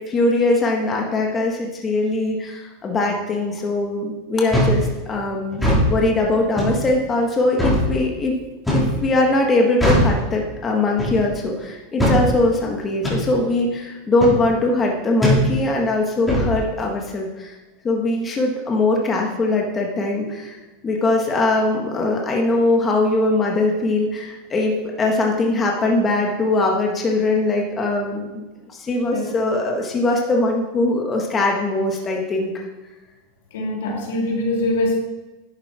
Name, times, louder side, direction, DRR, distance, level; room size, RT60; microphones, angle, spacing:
voice 1, 0.1-5.6 5.9-8.3 8.7-17.5 17.8-20.6 20.8-24.7 25.0-32.5, left 2 dB, 25° left, 0 dB, 1.8 m, -21 dB
sound 1, 4.5-4.8 5.5-5.9 6.6-6.8 7.6-7.8 8.7-8.9 9.8-10.1 11.0-11.2 12.0-12.2 13.0-13.2 14.2-14.4 15.2-15.4 16.3-16.5, equal, 5° left, 4.3 m, -19 dB
voice 2, 33.5-34.9, left 1 dB, 85° left, -1 dB, 3.2 m, -23 dB
11.0 x 8.6 x 4.5 m, 1.1 s
supercardioid pair, 130°, 0 cm